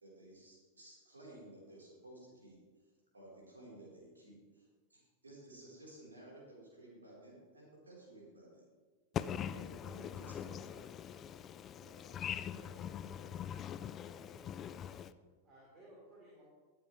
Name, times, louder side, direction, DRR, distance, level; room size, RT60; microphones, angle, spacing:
voice 1, 0.0-2.6 3.1-8.6 9.4-10.8, right 1 dB, 75° right, 4.1 m, -55 dB
voice 2, 9.1-15.1, left 9 dB, 30° left, 0.4 m, -42 dB
voice 3, 11.8-14.7 15.4-16.4, right 1 dB, 30° right, 3.7 m, -60 dB
19.5 x 7.7 x 3.3 m
figure-of-eight pair, 90°, 0 cm